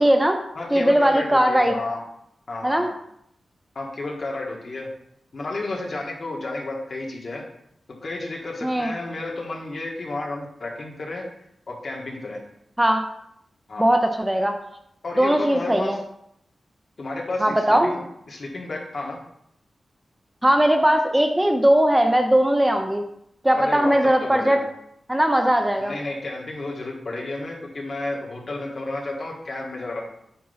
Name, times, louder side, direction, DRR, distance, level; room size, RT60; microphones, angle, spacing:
voice 1, 0.0-0.4 0.7-1.7 2.6-2.9 8.6-8.9 12.8-13.0 13.8-14.6 15.2-16.0 17.4-17.9 20.4-23.0 23.4-24.6 25.1-25.9, right 1 dB, 10° right, 4 dB, 0.6 m, -19 dB
voice 2, 0.5-2.0 2.5-2.9 3.7-4.9 5.3-7.4 8.0-11.2 11.7-12.4 13.7-13.9 15.0-15.9 17.0-18.0 18.3-19.2 23.5-24.6 25.8-30.0, left 2 dB, 55° left, -1 dB, 1.6 m, -31 dB
8.7 x 3.0 x 5.6 m, 0.74 s
wide cardioid pair, 105°, 0 cm